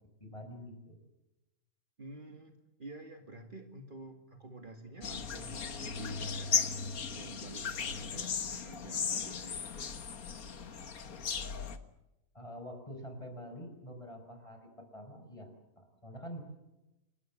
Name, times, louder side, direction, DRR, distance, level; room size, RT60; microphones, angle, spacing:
voice 1, 0.2-1.0 12.3-15.5 15.8-16.4, equal, 20° left, 5 dB, 5.5 m, -46 dB
voice 2, 2.0-2.5 2.8-6.8 7.1-9.9, right 2 dB, 35° right, 5 dB, 2.2 m, -49 dB
sound 1, 5.0-11.8, left 6 dB, 90° left, 1.9 m, -36 dB
28.5 x 21.0 x 7.5 m, 0.95 s
omnidirectional pair, 1.5 m